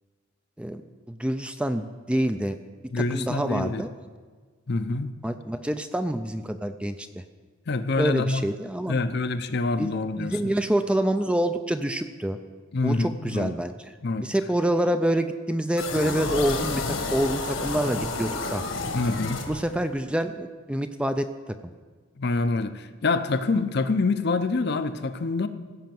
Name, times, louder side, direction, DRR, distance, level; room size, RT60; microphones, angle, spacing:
voice 1, 1.1-2.6 3.1-3.9 5.2-7.2 8.0-9.0 9.8-12.4 12.8-13.9 14.2-16.8 17.1-18.6 19.5-21.3, right 1 dB, 5° right, 8 dB, 0.4 m, -26 dB
voice 2, 2.9-3.8 4.7-5.2 7.7-8.4 8.9-10.5 12.7-13.6 14.0-14.3 18.9-19.4 22.2-25.5, left 3 dB, 55° left, 10 dB, 0.6 m, -26 dB
sound 1, 15.8-20.0, left 3 dB, 75° left, 1.5 m, -30 dB
16.0 x 5.7 x 7.6 m, 1.5 s
head